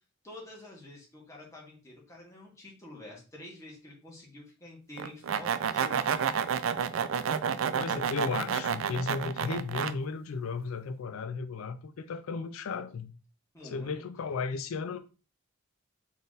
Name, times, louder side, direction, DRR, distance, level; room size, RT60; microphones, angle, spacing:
voice 1, 0.2-6.4 13.5-14.0, left 1 dB, 15° left, 1.4 m, -48 dB
sound 1, 5.0-9.9, right 7 dB, 70° right, 0.3 m, -30 dB
voice 2, 7.8-13.1 13.6-15.0, left 4 dB, 85° left, 0.4 m, -35 dB
3.8 x 2.5 x 3.8 m
head